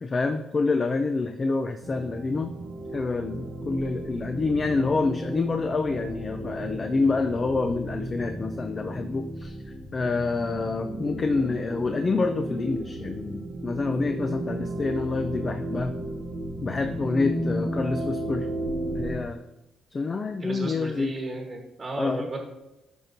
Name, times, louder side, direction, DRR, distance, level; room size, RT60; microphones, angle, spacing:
voice 1, 0.0-2.5 2.9-9.6 9.9-15.9 16.6-18.5 19.0-19.4 19.9-21.1 22.0-22.3, left 3 dB, 35° left, 6 dB, 0.4 m, -27 dB
sound 1, 1.8-19.2, right 1 dB, 65° right, 1.2 m, -34 dB
voice 2, 20.4-22.5, right 2 dB, 35° right, 1 dB, 1.2 m, -34 dB
11.5 x 4.4 x 2.7 m, 0.98 s
cardioid pair, 90°, 0 cm